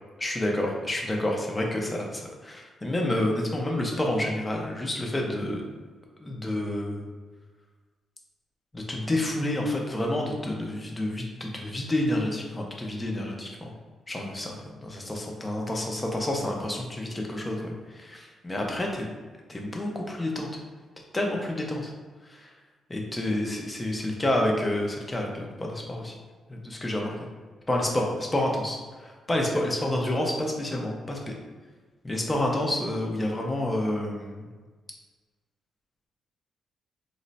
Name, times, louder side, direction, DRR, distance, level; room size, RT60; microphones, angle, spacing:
voice 1, 0.2-5.6 6.2-7.1 8.7-13.7 14.1-19.1 19.5-20.5 21.1-21.9 22.3-22.4 22.9-26.1 26.5-27.1 27.7-31.4 32.0-34.4, left 1 dB, 15° left, 0 dB, 0.5 m, -29 dB
3.1 x 2.1 x 3.9 m, 1.4 s
wide cardioid pair, 175°, 0 cm